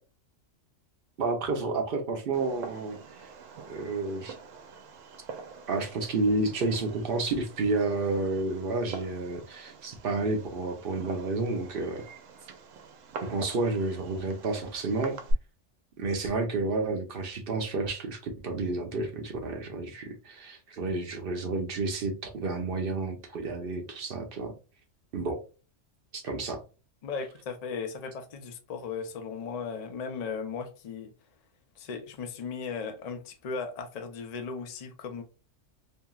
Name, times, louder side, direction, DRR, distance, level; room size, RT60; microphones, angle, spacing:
voice 1, 1.2-3.0 3.7-4.3 5.7-12.0 13.2-15.2 16.0-24.5 25.1-25.4 26.1-26.6, right 3 dB, 55° right, 0.7 m, -30 dB
Fireworks, 2.3-15.3, right 3 dB, 85° right, 1.0 m, -44 dB
voice 2, 27.0-31.1 31.8-35.2, left 5 dB, 55° left, 0.4 m, -36 dB
2.8 x 2.7 x 2.2 m
omnidirectional pair, 1.3 m